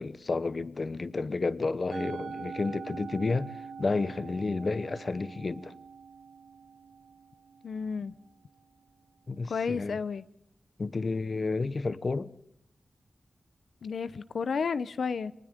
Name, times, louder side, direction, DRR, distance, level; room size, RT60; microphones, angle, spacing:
voice 1, 0.0-5.7 9.3-10.0 10.8-12.3, left 3 dB, 40° left, 0.9 m, -31 dB
Musical instrument, 1.9-8.3, right 5 dB, 85° right, 5.1 m, -43 dB
voice 2, 7.6-8.1 9.5-10.2 13.8-15.3, left 5 dB, 75° left, 0.7 m, -32 dB
29.5 x 24.0 x 3.7 m
wide cardioid pair, 135°, 0 cm